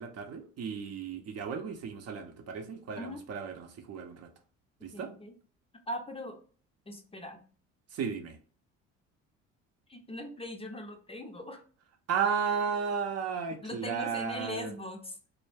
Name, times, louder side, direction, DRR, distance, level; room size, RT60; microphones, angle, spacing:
voice 1, 0.0-4.3 4.8-5.1 7.9-8.4 12.1-14.7, right 6 dB, 50° right, 0.6 m, -34 dB
voice 2, 4.9-5.3 5.9-6.4 6.9-7.4 9.9-11.6 13.6-15.2, left 1 dB, 20° left, 0.5 m, -40 dB
2.2 x 2.0 x 3.2 m
supercardioid pair, 70°, 32 cm